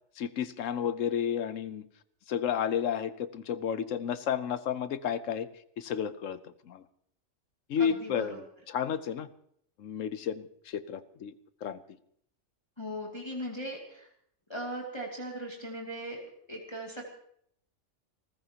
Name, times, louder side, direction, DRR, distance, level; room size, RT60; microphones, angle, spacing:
voice 1, 0.2-1.8 2.3-5.5 5.8-6.4 6.7-6.8 7.7-9.3 9.8-11.3 11.6-11.8, left 8 dB, 80° left, 14 dB, 1.2 m, -32 dB
voice 2, 7.8-8.4 12.8-14.1 14.5-16.2 16.5-17.1, equal, 20° left, -2 dB, 2.5 m, -38 dB
29.5 x 14.5 x 2.9 m, 0.67 s
omnidirectional pair, 1.3 m